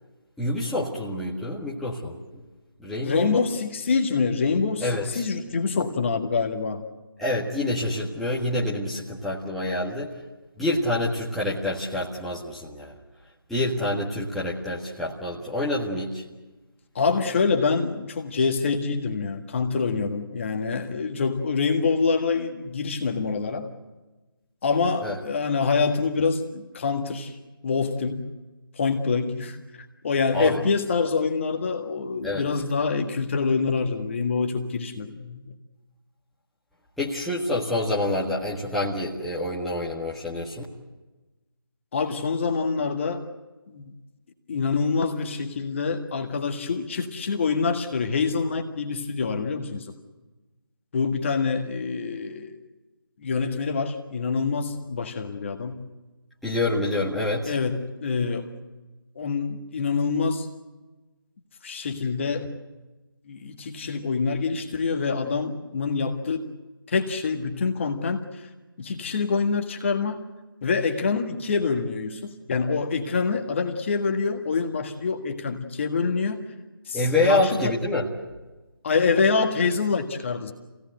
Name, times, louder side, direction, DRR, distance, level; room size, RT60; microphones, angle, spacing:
voice 1, 0.4-2.2 2.8-3.4 4.8-5.2 7.2-10.1 10.6-13.0 13.5-16.2 25.0-25.2 30.3-30.6 32.2-32.4 37.0-40.6 56.4-57.6 76.9-78.1, left 1 dB, ahead, -8 dB, 1.6 m, -27 dB
voice 2, 3.0-6.8 17.0-23.7 24.6-27.4 27.6-28.2 28.8-35.5 41.9-43.3 43.7-43.8 44.5-49.9 50.9-52.6 53.2-55.8 57.5-58.5 59.2-60.5 61.6-62.5 63.3-66.4 66.9-68.5 68.8-70.2 70.6-76.4 76.9-77.0 77.3-77.8 78.8-80.5, left 4 dB, 30° left, 4 dB, 1.7 m, -26 dB
27.0 x 17.5 x 8.0 m, 1.2 s
figure-of-eight pair, 160°, 12 cm